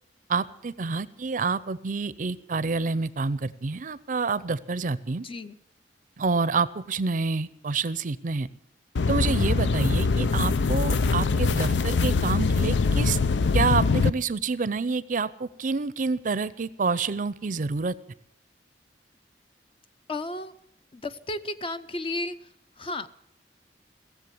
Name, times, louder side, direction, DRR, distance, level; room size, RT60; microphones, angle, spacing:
voice 1, 0.3-5.2 6.2-8.5 9.1-13.2 13.5-17.9, right 4 dB, 45° right, 17 dB, 0.5 m, -28 dB
voice 2, 5.2-5.6 20.1-20.5 20.9-22.3 22.8-23.1, left 2 dB, 30° left, 11 dB, 0.6 m, -33 dB
sound 1, 9.0-14.1, left 4 dB, 90° left, 0.5 m, -23 dB
17.0 x 7.5 x 9.3 m, 0.74 s
head